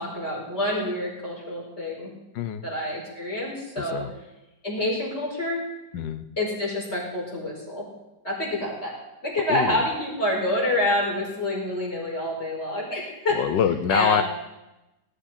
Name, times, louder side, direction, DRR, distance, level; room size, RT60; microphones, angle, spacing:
voice 1, 0.0-2.1 2.6-4.0 4.6-5.6 6.4-7.8 8.2-8.9 9.2-13.4 13.9-14.2, left 1 dB, 35° left, -3 dB, 5.1 m, -27 dB
voice 2, 2.3-2.7 3.8-4.1 5.9-6.3 9.5-9.8 13.3-14.2, left 9 dB, 90° left, 12 dB, 1.5 m, -25 dB
19.5 x 12.0 x 4.4 m, 0.98 s
omnidirectional pair, 1.9 m